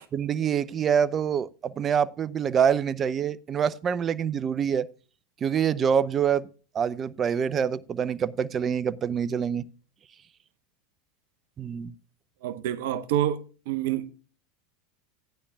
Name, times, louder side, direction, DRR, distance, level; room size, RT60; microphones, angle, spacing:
voice 1, 0.1-4.9 5.4-6.5 6.7-9.7 11.6-11.9, right 7 dB, 35° right, 0.6 m, -26 dB
voice 2, 12.4-14.1, right 12 dB, 70° right, 0.7 m, -28 dB
15.0 x 9.9 x 2.3 m
hypercardioid pair, 85°, 0 cm